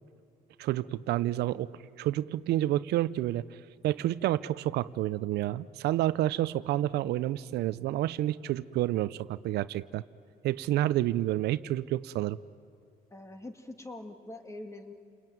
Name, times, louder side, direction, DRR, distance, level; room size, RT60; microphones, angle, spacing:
voice 1, 0.6-1.7 2.0-3.4 3.8-10.0 10.4-12.4, right 14 dB, 75° right, 16 dB, 0.6 m, -29 dB
voice 2, 13.1-14.9, left 2 dB, 15° left, 7 dB, 2.1 m, -43 dB
29.5 x 20.5 x 9.2 m, 2.2 s
cardioid pair, 110°, 17 cm